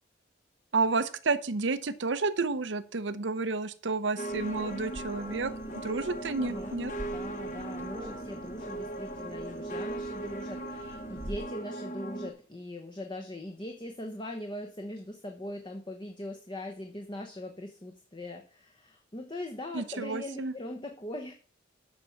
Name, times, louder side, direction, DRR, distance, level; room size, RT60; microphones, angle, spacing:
voice 1, 0.7-5.5 5.8-6.9 19.7-20.5, right 3 dB, 70° right, 12 dB, 0.8 m, -30 dB
sound 1, 4.2-12.3, right 2 dB, 40° left, 1.2 m, -38 dB
sound 2, 4.3-11.4, right 1 dB, 15° right, 0.8 m, -46 dB
voice 2, 6.4-6.8 7.1-21.3, left 1 dB, 25° left, 3 dB, 0.9 m, -41 dB
7.6 x 6.0 x 7.0 m, 0.41 s
head